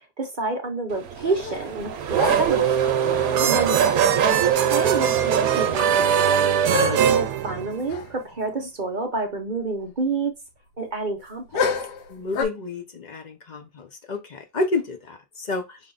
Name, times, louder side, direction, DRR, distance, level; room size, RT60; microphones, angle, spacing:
voice 1, 0.2-2.8 3.4-3.9 4.7-6.5 7.0-10.3 10.8-11.7, right 3 dB, 40° right, 0.8 m, -29 dB
Race car auto racing / Accelerating revving vroom, 0.9-6.5, right 8 dB, 65° right, 1.1 m, -23 dB
sound 1, 1.2-1.8 2.1-2.9 4.4-4.5 4.7-5.2 5.5-5.6 6.7-7.3 7.9-8.1 8.4-8.5 11.5-12.4, left 5 dB, 85° left, 1.4 m, -29 dB
sound 2, 2.8-8.1, right 8 dB, 85° right, 1.2 m, -23 dB
voice 2, 3.1-3.5 6.7-7.1 12.1-15.8, left 3 dB, 50° left, 0.5 m, -30 dB
5.5 x 2.4 x 3.8 m
omnidirectional pair, 1.7 m